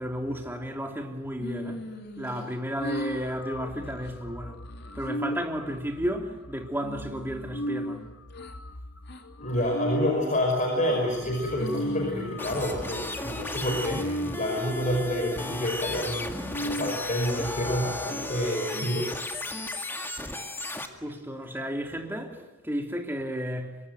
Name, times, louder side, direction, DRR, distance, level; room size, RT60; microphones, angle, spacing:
voice 1, 0.0-1.8 2.2-4.6 4.9-8.1 21.0-23.8, equal, 10° right, 3.1 m, -33 dB
sound 1, 1.4-2.5 2.8-3.3 3.7-4.1 4.6-5.2 5.7-6.4 6.8-8.5 9.1-9.2 9.8-10.2 10.8-11.3 11.6-13.2 13.7-14.3, left 1 dB, 55° left, 3.0 m, -43 dB
sound 2, 2.8-10.2 10.8-10.9 11.1-18.5, equal, 80° left, 1.1 m, -37 dB
voice 2, 9.4-19.1, left 1 dB, 35° left, 5.3 m, -28 dB
sound 3, 12.4-20.9, left 1 dB, 10° left, 2.0 m, -35 dB
25.0 x 22.5 x 9.3 m
head